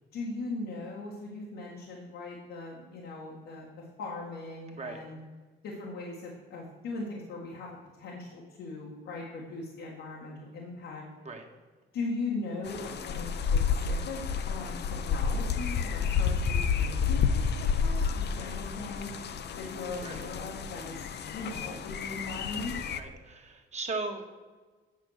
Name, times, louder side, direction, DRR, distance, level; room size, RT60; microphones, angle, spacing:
voice 1, 0.1-3.7 4.0-5.2 5.6-11.0 11.9-14.2 14.5-19.1 19.6-21.0 21.3-22.8, left 3 dB, 90° left, -3 dB, 1.8 m, -39 dB
sound 1, 12.6-23.0, left 6 dB, 60° left, 0.7 m, -30 dB
voice 2, 23.0-24.3, right 3 dB, 35° right, 3 dB, 1.6 m, -37 dB
9.3 x 6.2 x 6.4 m, 1.3 s
cardioid pair, 90°, 20 cm